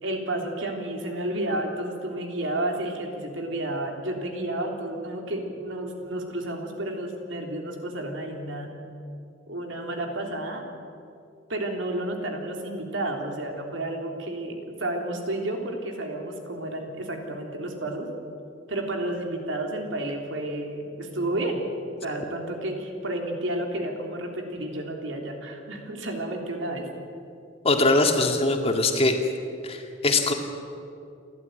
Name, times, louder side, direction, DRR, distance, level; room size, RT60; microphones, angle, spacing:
voice 1, 0.0-8.8 9.5-10.6 11.5-18.1 18.7-21.6 22.0-26.9, right 1 dB, 80° right, 2 dB, 3.4 m, -31 dB
voice 2, 27.6-29.2 29.6-30.3, left 2 dB, 30° left, 4 dB, 2.1 m, -22 dB
29.5 x 12.5 x 9.2 m, 2.5 s
head